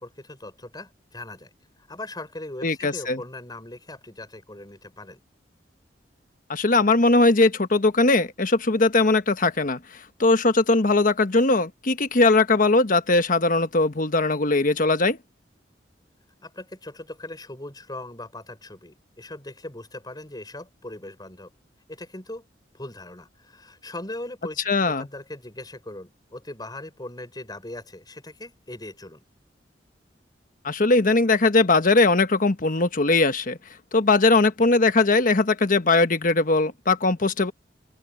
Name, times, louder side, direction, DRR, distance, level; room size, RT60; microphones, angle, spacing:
voice 1, 0.0-1.5 1.9-5.2 16.4-21.5 21.9-22.5 22.7-29.2, left 1 dB, 25° left, 5.9 m, -39 dB
voice 2, 2.6-3.2 6.5-9.8 10.2-15.2 24.7-25.1 30.6-33.6 33.9-37.5, left 3 dB, 50° left, 1.3 m, -20 dB
open air
head